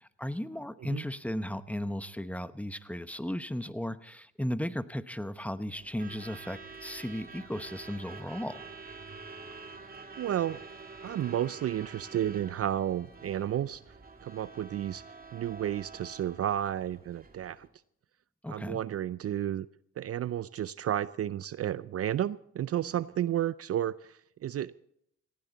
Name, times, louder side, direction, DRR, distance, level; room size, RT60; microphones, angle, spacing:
voice 1, 0.0-8.6 18.4-18.8, equal, 5° left, 13 dB, 0.9 m, -35 dB
Truck / Alarm, 5.7-17.7, right 4 dB, 25° right, 2.7 m, -48 dB
voice 2, 10.2-10.6 11.0-13.8 14.2-15.0 15.3-17.7 18.5-19.7 20.0-24.7, right 11 dB, 45° right, 18 dB, 0.5 m, -32 dB
18.5 x 16.0 x 4.1 m, 0.73 s
supercardioid pair, 65°, 33 cm